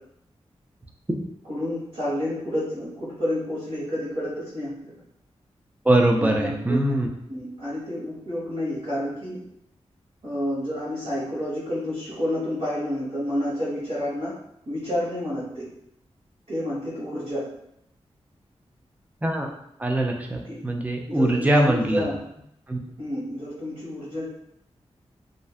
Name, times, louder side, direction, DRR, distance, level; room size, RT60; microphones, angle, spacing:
voice 1, 1.4-4.9 6.2-9.4 10.2-14.3 14.6-15.7 16.5-17.5 20.4-20.6 21.1-22.2 23.0-24.3, left 1 dB, 70° right, -11 dB, 1.2 m, -30 dB
voice 2, 5.9-7.1 19.2-19.5 19.8-22.0 22.7-22.8, right 1 dB, 15° right, 1 dB, 0.4 m, -22 dB
2.5 x 2.2 x 2.4 m, 0.75 s
wide cardioid pair, 90°, 11 cm